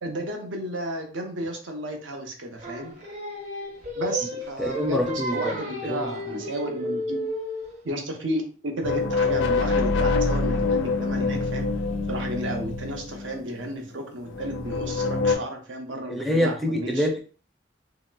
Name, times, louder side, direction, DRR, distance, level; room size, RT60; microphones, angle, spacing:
voice 1, 0.0-3.0 3.9-7.3 7.8-11.7 12.1-17.1, right 1 dB, 80° right, 3 dB, 0.7 m, -32 dB
Singing, 2.6-7.8, equal, 40° right, 0.8 m, -33 dB
voice 2, 4.6-6.5 16.1-17.2, left 1 dB, ahead, 2 dB, 0.4 m, -27 dB
sound 1, 8.8-13.8 14.3-15.4, left 4 dB, 75° left, 0.4 m, -25 dB
3.1 x 2.8 x 2.2 m, 0.40 s
head